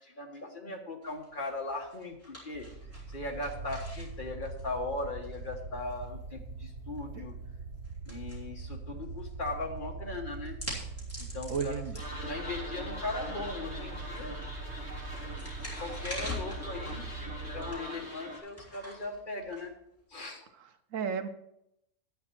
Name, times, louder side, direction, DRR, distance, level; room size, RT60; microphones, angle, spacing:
voice 1, 0.0-2.7 3.1-7.3 8.1-10.6 11.2-14.4 15.8-19.7 20.1-20.5, left 2 dB, 40° left, 1.4 m, -39 dB
sound 1, 1.0-20.3, left 1 dB, 10° left, 3.1 m, -47 dB
sound 2, 2.5-17.8, right 4 dB, 60° right, 1.1 m, -42 dB
voice 2, 11.5-12.0 20.6-21.3, right 6 dB, 80° right, 1.2 m, -33 dB
sound 3, 12.0-18.4, equal, 15° right, 3.0 m, -42 dB
10.5 x 8.6 x 4.5 m
omnidirectional pair, 1.3 m